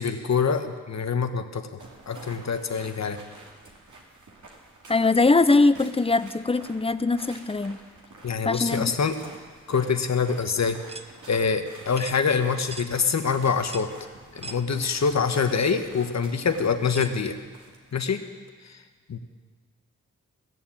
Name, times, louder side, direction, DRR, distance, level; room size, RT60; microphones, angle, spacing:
voice 1, 0.0-1.8 2.1-3.2 8.2-9.2 9.7-10.8 11.3-13.9 14.3-17.4 17.9-18.2 18.6-18.8 19.1-19.2, left 5 dB, 55° left, 8 dB, 1.3 m, -25 dB
sound 1, 1.8-18.1, right 2 dB, 65° right, 2.7 m, -48 dB
voice 2, 4.9-7.8 8.4-8.9, left 3 dB, 15° left, 13 dB, 0.7 m, -21 dB
sound 2, 10.9-11.1 12.0-12.2 12.7-12.9 13.7-13.9 14.4-14.6 15.5-15.6 16.9-17.2, right 2 dB, 20° right, 0.9 m, -39 dB
17.0 x 7.1 x 8.8 m, 1.5 s
supercardioid pair, 40°, 33 cm